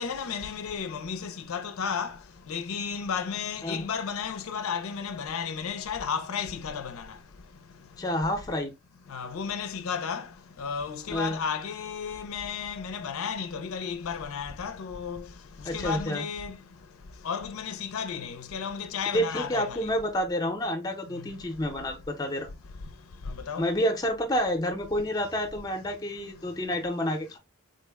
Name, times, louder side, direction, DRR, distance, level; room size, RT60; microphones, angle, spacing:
voice 1, 0.0-2.2 2.5-7.1 9.1-10.3 10.6-15.2 15.7-16.6 17.2-19.9 21.2-21.3 23.3-23.7, left 6 dB, 85° left, 0.5 m, -33 dB
voice 2, 8.0-8.7 11.1-11.4 15.6-16.3 19.1-22.5 23.6-27.4, equal, 20° left, 0.6 m, -29 dB
3.7 x 2.1 x 3.3 m
head